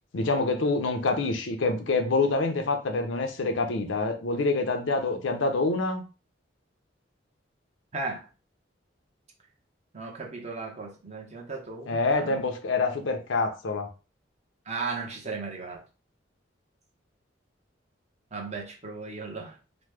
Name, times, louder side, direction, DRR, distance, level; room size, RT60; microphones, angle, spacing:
voice 1, 0.1-6.0 11.9-13.9, left 3 dB, 85° left, 0.6 m, -26 dB
voice 2, 7.9-8.3 9.9-12.4 14.7-15.8 18.3-19.5, right 4 dB, 35° right, 0.7 m, -36 dB
3.0 x 2.0 x 3.3 m
head